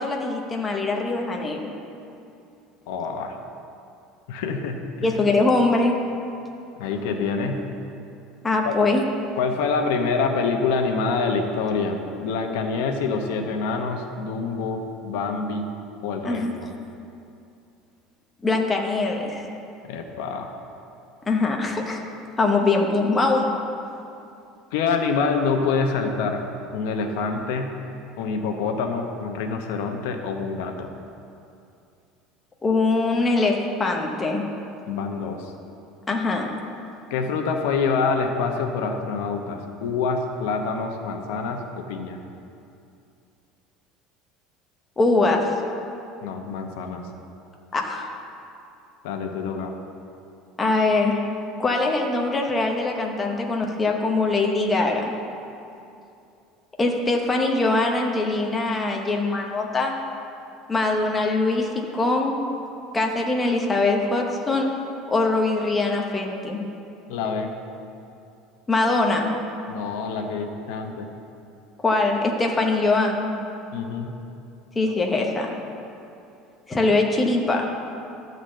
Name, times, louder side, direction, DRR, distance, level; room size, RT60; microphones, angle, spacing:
voice 1, 0.0-1.7 5.0-6.0 8.4-9.0 16.2-16.6 18.4-19.5 21.3-22.0 22.4-23.5 32.6-34.4 36.1-36.5 45.0-45.5 47.7-48.1 50.6-51.2 51.6-55.1 56.8-59.9 60.7-62.4 62.9-64.7 65.1-66.6 68.7-69.3 71.8-73.3 74.8-75.5 76.7-77.7, left 3 dB, 10° left, 0 dB, 0.7 m, -22 dB
voice 2, 2.9-3.3 4.3-5.3 6.8-7.6 8.6-8.7 9.4-15.7 16.0-16.7 19.8-20.5 24.7-26.4 26.7-27.7 28.2-30.9 34.9-35.5 37.1-42.2 46.2-47.0 49.0-49.7 67.1-67.5 69.7-71.1 73.7-74.1, left 4 dB, 80° left, 4 dB, 0.9 m, -26 dB
11.5 x 4.0 x 7.6 m, 2.7 s
cardioid pair, 170°, 0 cm